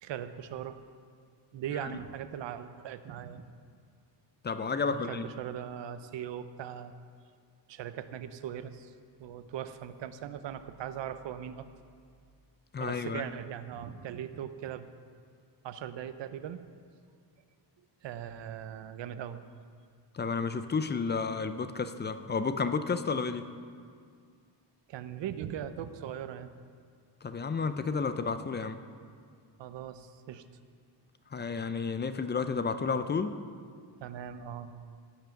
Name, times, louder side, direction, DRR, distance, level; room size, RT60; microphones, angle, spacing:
voice 1, 0.0-0.8 1.5-3.6 4.8-6.9 7.7-8.9 9.2-11.7 12.8-14.9 15.6-16.6 18.0-19.4 24.9-26.5 29.6-30.4 34.0-34.7, right 9 dB, 85° right, 11 dB, 0.7 m, -39 dB
voice 2, 4.4-5.3 12.7-13.2 20.1-23.5 27.2-28.8 31.3-33.4, left 5 dB, 25° left, 10 dB, 0.4 m, -31 dB
15.5 x 6.0 x 7.0 m, 2.1 s
wide cardioid pair, 145°, 43 cm